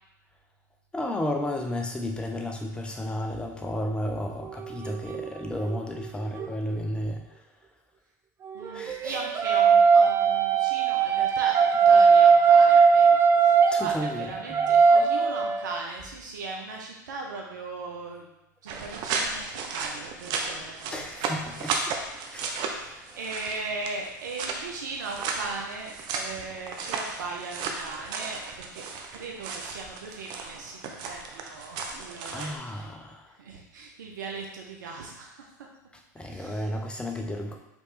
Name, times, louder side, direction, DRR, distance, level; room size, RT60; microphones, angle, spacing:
voice 1, 0.9-7.5 8.7-9.2 13.6-14.8 18.7-18.8 20.9-22.0 22.3-23.2 32.2-33.3 36.1-37.5, left 1 dB, 10° left, 2 dB, 0.7 m, -33 dB
sound 1, 4.4-6.5 8.4-15.8, right 6 dB, 25° right, 0.4 m, -20 dB
voice 2, 8.5-18.3 18.6-21.3 21.6-21.9 23.2-28.8 29.1-32.9 33.4-35.5 36.2-36.7, right 3 dB, 75° right, 0 dB, 0.8 m, -38 dB
sound 2, 18.7-32.6, right 4 dB, 45° right, 0.7 m, -34 dB
5.1 x 3.2 x 3.2 m, 0.96 s
hypercardioid pair, 100°, 10 cm